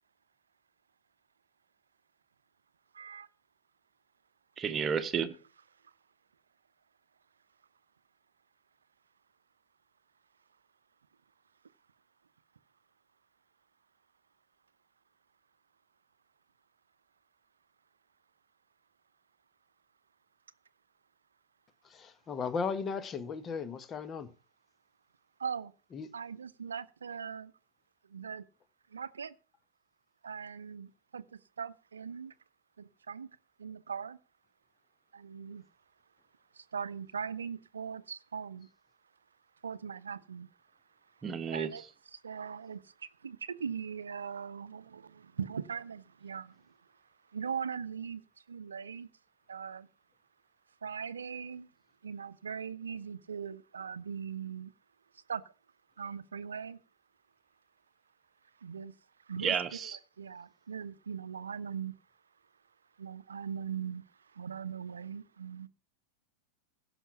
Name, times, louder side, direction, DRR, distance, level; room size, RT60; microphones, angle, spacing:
voice 1, 2.9-3.3 5.8-5.9 25.4-25.7 26.1-27.5 28.0-28.4 28.9-29.3 30.2-32.3 32.8-33.3 33.6-34.2 35.1-35.7 36.5-38.7 39.6-40.5 41.1-41.2 41.5-41.8 42.1-48.2 48.5-49.1 49.5-49.9 50.8-51.7 52.0-54.7 55.1-55.4 56.0-56.8 58.6-59.9 60.2-62.0 63.0-65.7, right 7 dB, 70° right, 0.7 m, -40 dB
voice 2, 4.6-5.3 41.2-41.8 59.4-60.0, right 7 dB, 25° right, 1.3 m, -32 dB
voice 3, 21.9-24.3 25.9-26.1, left 5 dB, 25° left, 1.2 m, -36 dB
16.5 x 6.2 x 5.8 m
figure-of-eight pair, 90°, 0 cm